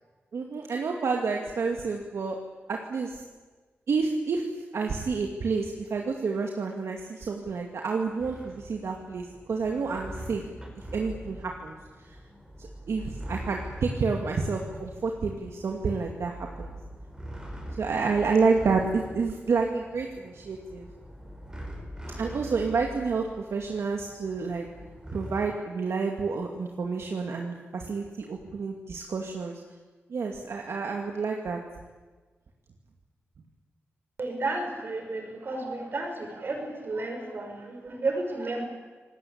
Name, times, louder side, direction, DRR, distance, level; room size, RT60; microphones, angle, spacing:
voice 1, 0.3-2.4 2.7-3.2 3.9-10.4 10.8-11.8 12.1-12.2 12.6-16.7 17.8-20.9 22.2-24.7 25.1-29.6 30.1-31.6, right 4 dB, 75° right, 2 dB, 2.5 m, -29 dB
sound 1, 8.2-25.5, equal, 15° right, 5.2 m, -43 dB
voice 2, 34.2-38.6, right 2 dB, 55° right, 3 dB, 6.3 m, -32 dB
27.5 x 19.0 x 8.8 m, 1.3 s
wide cardioid pair, 115°, 5 cm